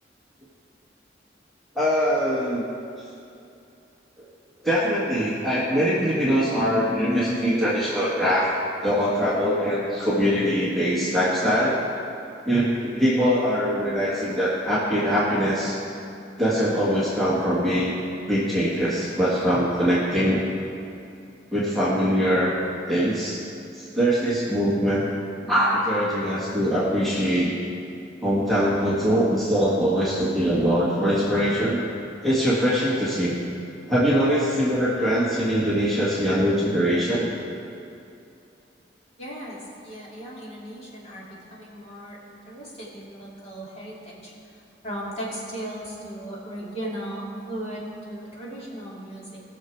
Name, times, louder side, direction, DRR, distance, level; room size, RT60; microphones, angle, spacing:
voice 1, 1.7-2.6 4.6-8.5 8.8-11.8 12.4-15.8 16.4-17.9 18.3-20.4 21.5-22.5 22.9-23.4 23.8-25.1 25.4-27.5 28.2-31.8 32.2-33.3 33.9-37.3, equal, ahead, -9 dB, 1.6 m, -22 dB
voice 2, 39.2-44.3 44.8-49.4, right 1 dB, 35° left, -6 dB, 2.6 m, -36 dB
19.0 x 6.7 x 4.7 m, 2.6 s
head